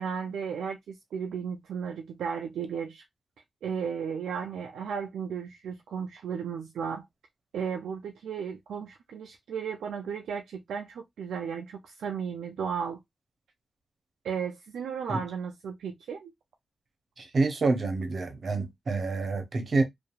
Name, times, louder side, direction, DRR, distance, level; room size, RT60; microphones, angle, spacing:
voice 1, 0.0-3.0 3.6-7.1 7.5-13.0 14.2-16.3, right 6 dB, 85° right, 0.3 m, -34 dB
voice 2, 17.2-19.8, right 3 dB, 65° right, 0.8 m, -27 dB
2.7 x 2.4 x 2.3 m
supercardioid pair, 40°, 0 cm